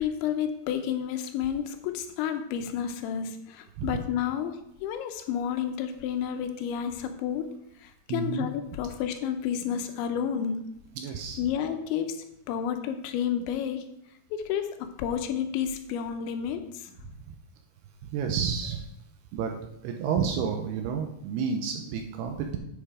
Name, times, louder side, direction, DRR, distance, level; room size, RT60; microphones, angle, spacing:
voice 1, 0.0-7.5 7.8-10.7 11.4-13.8 14.3-16.9, left 8 dB, 85° left, 7 dB, 3.2 m, -31 dB
voice 2, 8.1-8.5 11.0-11.4 17.0-17.2 18.1-18.9 19.3-22.6, right 6 dB, 80° right, 4 dB, 2.5 m, -30 dB
10.0 x 5.5 x 4.9 m, 0.79 s
omnidirectional pair, 5.2 m